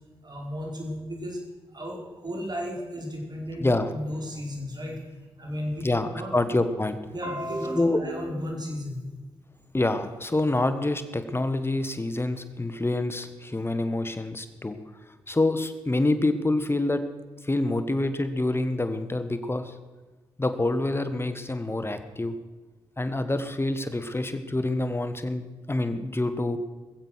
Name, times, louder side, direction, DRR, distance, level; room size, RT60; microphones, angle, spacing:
voice 1, 0.2-1.4 1.7-3.7 3.9-5.9 6.1-6.3 7.1-9.0, equal, 40° right, 0 dB, 4.8 m, -34 dB
voice 2, 3.6-3.9 5.8-7.0 7.7-8.0 9.7-14.8 15.3-17.0 17.4-19.7 20.4-22.3 23.0-26.6, left 2 dB, 25° left, 10 dB, 1.6 m, -26 dB
21.5 x 7.7 x 6.4 m, 1.2 s
supercardioid pair, 45°, 10 cm